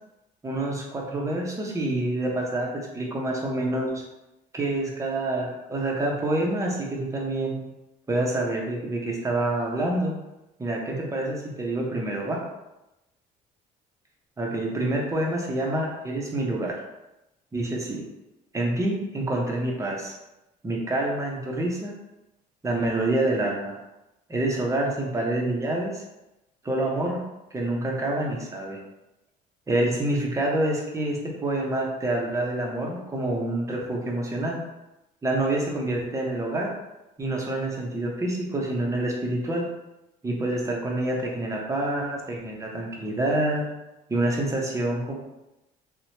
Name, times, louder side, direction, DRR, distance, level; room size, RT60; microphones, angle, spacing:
voice 1, 0.4-4.0 4.5-7.6 8.1-10.2 10.6-12.4 14.4-16.7 17.5-18.0 18.5-20.1 20.6-21.9 22.6-23.8 24.3-26.0 26.6-27.2 27.5-28.8 29.7-34.6 35.2-36.7 37.2-39.6 40.2-43.7 44.1-45.1, right 1 dB, 20° right, -1 dB, 0.7 m, -27 dB
2.9 x 2.1 x 2.7 m, 0.95 s
cardioid pair, 110°, 17 cm